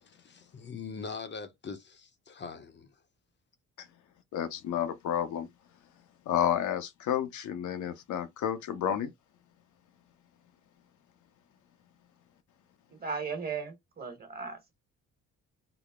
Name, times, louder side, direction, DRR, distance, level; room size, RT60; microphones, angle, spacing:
voice 1, 0.0-2.9, left 5 dB, 35° left, 0.7 m, -42 dB
voice 2, 4.3-5.5 6.3-9.1, left 9 dB, 75° left, 0.8 m, -31 dB
voice 3, 12.9-14.6, right 5 dB, 30° right, 1.4 m, -36 dB
3.9 x 2.1 x 3.6 m
cardioid pair, 90°, 30 cm